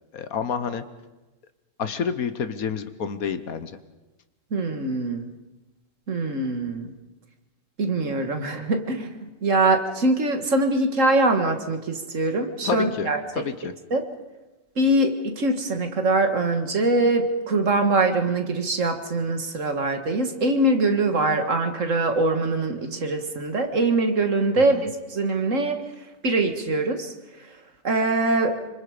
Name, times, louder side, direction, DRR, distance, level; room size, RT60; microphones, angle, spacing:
voice 1, 0.1-0.8 1.8-3.8 12.6-13.1 13.4-13.7 24.7-24.8, left 6 dB, 70° left, 11 dB, 1.5 m, -28 dB
voice 2, 4.5-5.3 6.1-6.9 7.8-13.4 13.9-14.1 14.8-27.6 27.8-28.6, right 2 dB, 55° right, 6 dB, 2.1 m, -23 dB
26.5 x 25.5 x 5.1 m, 1.1 s
omnidirectional pair, 1.6 m